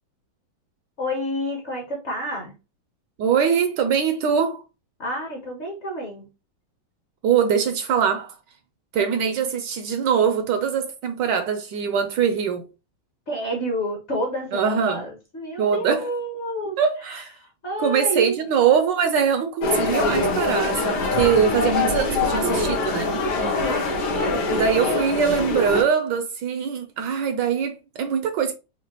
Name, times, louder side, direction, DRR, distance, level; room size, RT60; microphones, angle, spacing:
voice 1, 1.0-2.5 5.0-6.3 13.3-16.8 17.1-18.4 23.6-23.9 24.3-24.5, equal, 45° left, 1.0 m, -29 dB
voice 2, 3.2-4.6 7.2-8.3 8.9-12.6 14.5-15.1 15.6-16.1 16.8-17.3 17.8-23.1 24.5-28.5, right 7 dB, 75° right, 1.2 m, -22 dB
sound 1, 19.6-25.8, left 3 dB, 60° left, 1.4 m, -23 dB
5.0 x 2.4 x 2.9 m
omnidirectional pair, 2.2 m